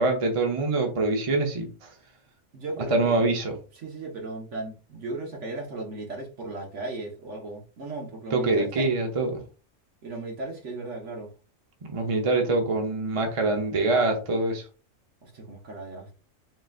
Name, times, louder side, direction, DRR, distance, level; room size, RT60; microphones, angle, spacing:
voice 1, 0.0-1.9 2.9-3.5 8.3-9.4 11.9-14.6, right 2 dB, 30° right, 0.8 m, -24 dB
voice 2, 2.5-3.2 3.7-8.9 10.0-11.3 15.2-16.1, right 2 dB, 70° right, 1.4 m, -36 dB
4.0 x 3.9 x 2.4 m
omnidirectional pair, 1.3 m